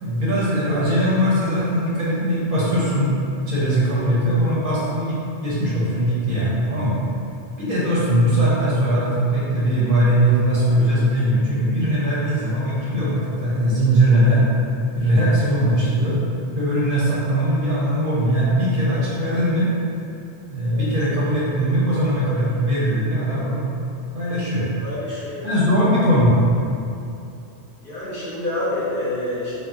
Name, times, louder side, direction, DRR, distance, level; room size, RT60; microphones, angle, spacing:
voice 1, 0.0-3.1 3.5-7.0 7.6-14.4 15.0-16.2 16.5-19.7 20.5-23.6 24.1-24.7 25.4-26.4, equal, 60° right, -8 dB, 0.6 m, -20 dB
voice 2, 24.8-25.5 27.8-29.7, left 1 dB, 55° left, -10 dB, 0.9 m, -27 dB
3.6 x 2.0 x 2.3 m, 2.6 s
omnidirectional pair, 1.2 m